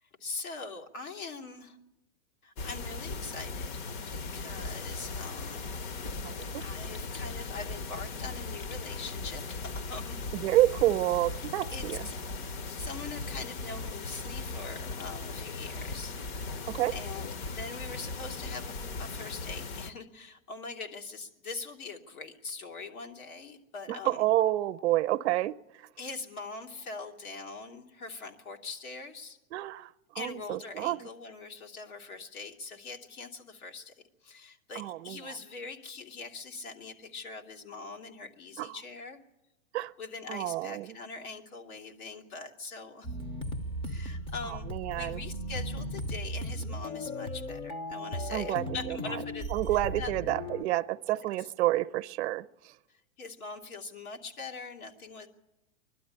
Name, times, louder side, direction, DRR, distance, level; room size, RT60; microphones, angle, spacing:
voice 1, 0.0-1.8 2.4-5.6 6.1-10.2 11.7-12.2 12.8-16.2 16.9-24.3 26.0-29.4 30.1-33.9 34.2-39.2 40.0-43.1 43.8-50.3 51.1-51.5 52.9-55.3, left 4 dB, 80° left, 3.0 m, -43 dB
sound 1, 2.6-19.9, left 3 dB, 50° left, 1.2 m, -38 dB
voice 2, 6.2-6.6 10.3-12.1 16.7-16.9 23.9-25.6 29.5-31.1 34.7-35.2 38.6-38.7 39.7-39.9 40.3-41.0 44.5-45.2 48.3-49.2 49.5-52.7, right 15 dB, 50° right, 0.7 m, -29 dB
sound 2, 6.3-7.6 8.6-9.9 10.3-10.5 10.8-10.9 11.1-11.2 11.4-12.9 13.7-14.4 14.7-15.8 16.5-17.5 17.7-17.9 18.2-18.4 18.7-19.6 19.9-20.0 20.4-20.5, left 4 dB, 65° left, 3.5 m, -55 dB
sound 3, 43.0-50.6, equal, 15° left, 0.6 m, -37 dB
22.0 x 12.0 x 10.0 m
hypercardioid pair, 145°, 42 cm